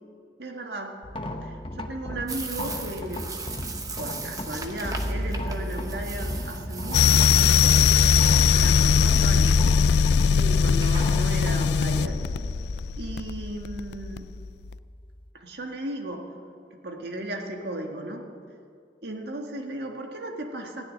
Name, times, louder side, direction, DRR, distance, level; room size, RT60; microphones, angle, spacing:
voice 1, 0.4-1.0 1.4-3.3 4.0-7.9 8.5-9.6 10.3-12.2 13.0-14.3 15.3-16.3 16.8-18.3 19.0-20.8, right 1 dB, 75° right, 3 dB, 1.6 m, -35 dB
sound 1, 1.0-15.3, left 1 dB, 30° left, 0.8 m, -35 dB
sound 2, 2.3-11.8, right 3 dB, 20° right, 0.9 m, -39 dB
sound 3, 6.9-14.4, left 6 dB, 70° left, 0.3 m, -20 dB
15.0 x 7.0 x 9.9 m, 2.3 s
head